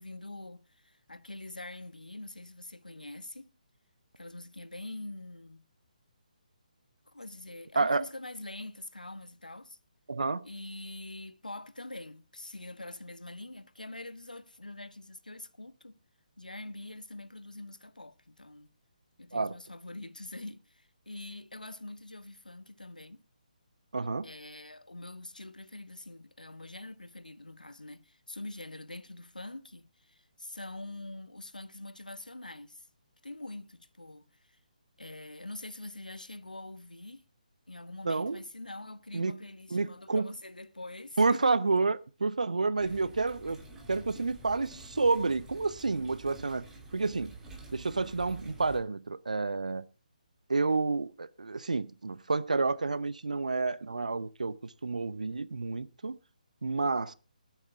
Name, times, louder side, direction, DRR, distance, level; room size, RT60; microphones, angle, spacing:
voice 1, 0.0-3.5 4.2-5.7 7.1-9.8 10.4-16.0 16.4-18.7 19.2-23.2 24.2-32.9 33.2-34.3 35.0-37.2 37.7-41.6 42.8-42.9, left 2 dB, 75° left, 1.1 m, -44 dB
voice 2, 7.7-8.1 10.1-10.5 19.3-19.5 23.9-24.3 38.0-38.4 39.1-39.4 39.7-40.3 41.2-46.7 46.9-47.3 47.7-49.8 50.5-56.2 56.6-57.1, right 3 dB, 60° right, 0.9 m, -29 dB
sound 1, 42.8-48.8, right 2 dB, 10° right, 2.6 m, -49 dB
20.0 x 9.1 x 3.6 m
figure-of-eight pair, 145°, 4 cm